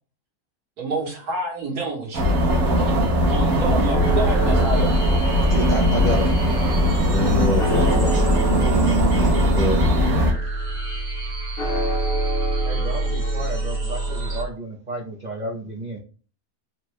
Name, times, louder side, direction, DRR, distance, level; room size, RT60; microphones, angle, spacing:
voice 1, 0.8-2.3 2.8-3.0 3.3-4.9, right 3 dB, 85° right, -2 dB, 1.8 m, -28 dB
sound 1, 2.1-10.3, equal, 70° right, 1.4 m, -20 dB
sound 2, 3.8-14.4, right 2 dB, 30° right, 0.7 m, -38 dB
sound 3, 3.9-14.5, right 2 dB, 50° left, 0.9 m, -25 dB
voice 2, 5.4-6.6 6.9-10.6 11.9-12.6 14.3-14.4, left 1 dB, 70° left, 1 dB, 0.4 m, -29 dB
voice 3, 12.6-16.0, right 1 dB, 55° right, 1 dB, 0.5 m, -33 dB
4.2 x 2.1 x 4.5 m, 0.38 s
omnidirectional pair, 1.6 m